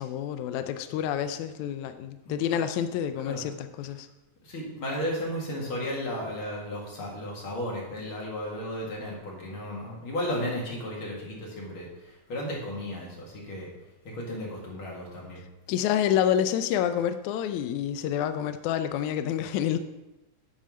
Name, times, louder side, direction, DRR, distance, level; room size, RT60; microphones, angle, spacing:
voice 1, 0.0-4.1 15.7-19.8, left 10 dB, 80° left, 9 dB, 1.8 m, -28 dB
voice 2, 4.4-11.9 12.3-13.7 14.1-15.4, equal, 45° left, -2 dB, 2.4 m, -34 dB
9.0 x 4.3 x 6.2 m, 0.98 s
omnidirectional pair, 3.6 m